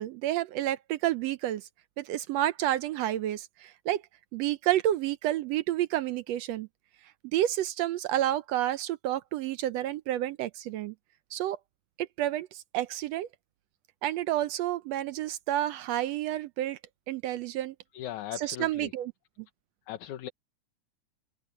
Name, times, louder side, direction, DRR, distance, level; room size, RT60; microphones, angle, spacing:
voice 1, 0.0-1.7 2.0-4.0 4.3-6.7 7.2-10.9 11.3-11.6 12.0-13.3 14.0-16.8 17.1-17.7 18.4-19.1, right 13 dB, 75° right, 1.6 m, -30 dB
voice 2, 17.9-18.9 19.9-20.3, left 12 dB, 80° left, 2.6 m, -38 dB
open air
omnidirectional pair, 3.4 m